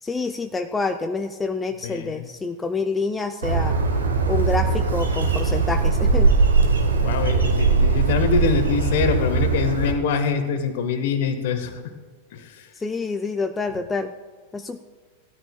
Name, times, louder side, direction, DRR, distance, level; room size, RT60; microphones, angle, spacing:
voice 1, 0.0-3.8 4.3-6.3 12.7-14.1 14.5-14.8, left 4 dB, 10° left, 7 dB, 0.5 m, -27 dB
voice 2, 1.8-2.3 7.0-11.8 12.3-12.7, left 6 dB, 55° left, 8 dB, 1.3 m, -24 dB
Bird, 3.4-9.9, right 4 dB, 70° right, 1.4 m, -20 dB
17.0 x 13.0 x 2.2 m, 1.4 s
figure-of-eight pair, 90°, 0 cm